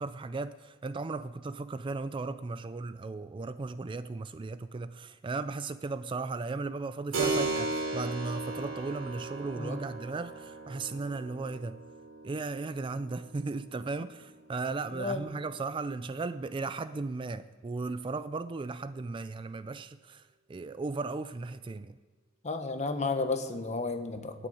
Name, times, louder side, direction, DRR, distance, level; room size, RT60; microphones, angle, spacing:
voice 1, 0.0-11.8 12.2-22.0, right 3 dB, 25° right, 0.3 m, -36 dB
Keyboard (musical), 7.1-15.3, right 3 dB, 75° right, 3.3 m, -37 dB
voice 2, 14.9-15.2 22.4-24.5, left 3 dB, 35° left, 1.1 m, -32 dB
11.5 x 9.1 x 8.6 m
head